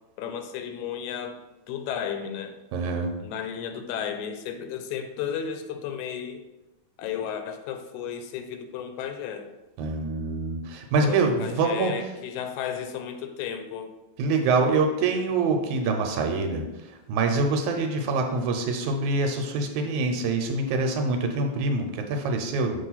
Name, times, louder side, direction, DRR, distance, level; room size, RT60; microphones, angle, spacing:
voice 1, 0.2-1.4 1.7-2.6 3.2-6.4 7.0-9.5 11.0-13.9, left 8 dB, 85° left, 8 dB, 2.0 m, -33 dB
voice 2, 2.7-3.1 9.8-11.9 14.2-22.9, right 3 dB, 90° right, 4 dB, 2.1 m, -25 dB
6.4 x 3.1 x 5.6 m, 1.0 s
omnidirectional pair, 3.3 m